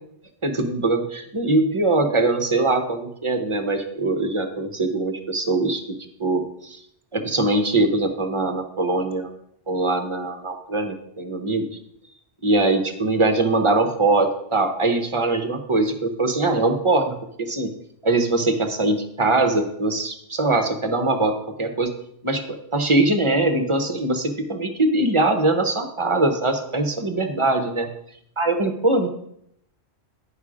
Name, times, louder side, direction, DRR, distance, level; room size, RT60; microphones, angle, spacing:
voice 1, 0.4-5.8 6.2-6.8 7.1-9.3 9.7-11.7 12.4-17.7 18.0-21.9 22.2-27.9 28.4-29.1, right 2 dB, 30° right, 6 dB, 0.8 m, -22 dB
9.8 x 4.9 x 4.9 m, 0.73 s
omnidirectional pair, 1.1 m